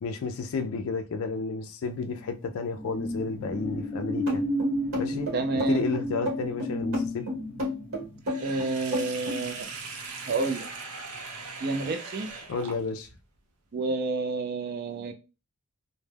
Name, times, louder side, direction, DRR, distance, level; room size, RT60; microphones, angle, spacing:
voice 1, 0.0-4.4 5.0-5.3 5.7-7.3 12.5-13.1, left 4 dB, 65° left, 0.3 m, -32 dB
sound 1, 1.9-10.9 11.2-11.5, equal, 5° left, 0.6 m, -34 dB
sound 2, 4.3-9.4, left 1 dB, 60° right, 1.1 m, -31 dB
voice 2, 5.3-5.8 8.4-9.7 10.3-10.7 11.6-12.3 13.7-15.1, right 3 dB, 45° right, 0.4 m, -29 dB
Sink (filling or washing), 8.2-13.2, right 4 dB, 90° right, 0.6 m, -40 dB
2.2 x 2.1 x 3.2 m
head